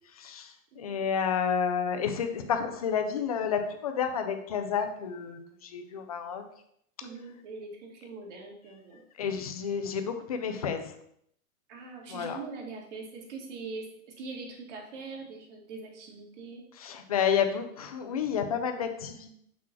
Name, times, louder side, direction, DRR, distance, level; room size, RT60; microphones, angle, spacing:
voice 1, 0.2-0.5 0.8-6.4 9.2-10.9 12.1-12.4 16.8-19.3, left 7 dB, 30° left, 7 dB, 0.3 m, -30 dB
voice 2, 0.7-1.0 7.0-9.0 11.7-16.6, right 4 dB, 50° right, 0 dB, 1.9 m, -42 dB
6.1 x 3.1 x 5.7 m, 0.71 s
hypercardioid pair, 140°, 46 cm